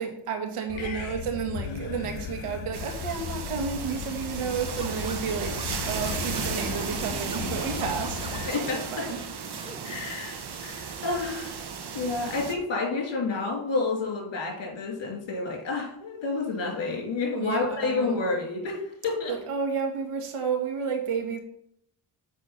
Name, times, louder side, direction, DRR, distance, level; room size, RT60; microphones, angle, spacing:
voice 1, 0.0-5.5 5.9-8.3 8.7-9.2 10.0-10.2 17.4-18.2 19.3-21.4, right 6 dB, 85° right, 3 dB, 1.8 m, -31 dB
sound 1, 0.7-8.5, left 7 dB, 75° left, 1.1 m, -36 dB
voice 2, 0.8-1.1 8.5-8.9 9.8-11.6 11.9-19.3, left 3 dB, 60° left, -1 dB, 3.0 m, -30 dB
sound 2, 2.7-12.5, right 6 dB, 50° right, 1.2 m, -35 dB
Scratching (performance technique), 4.8-8.8 9.2-9.8, right 2 dB, 10° right, 0.6 m, -43 dB
7.4 x 4.6 x 5.7 m, 0.72 s
cardioid pair, 95°, 50 cm